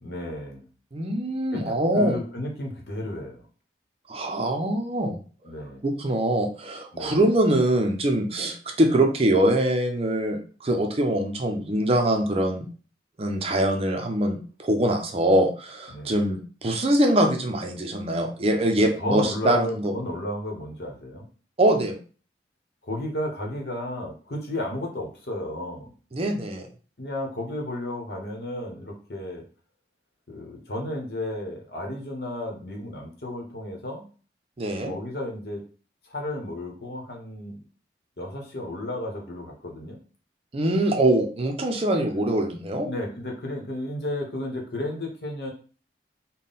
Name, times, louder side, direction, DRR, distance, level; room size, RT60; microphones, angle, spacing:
voice 1, 0.0-0.7 1.5-3.4 5.4-5.8 6.9-7.2 15.9-16.2 19.0-21.3 22.8-25.9 27.0-29.4 30.3-34.0 34.9-35.6 36.0-37.6 38.2-40.0 42.8-45.5, left 1 dB, 60° left, 1 dB, 1.0 m, -33 dB
voice 2, 0.9-2.2 4.1-5.2 5.8-12.6 13.2-19.9 21.6-22.0 26.1-26.6 34.6-34.9 40.5-42.9, right 1 dB, 35° right, 3 dB, 0.5 m, -23 dB
3.7 x 2.2 x 3.9 m, 0.39 s
head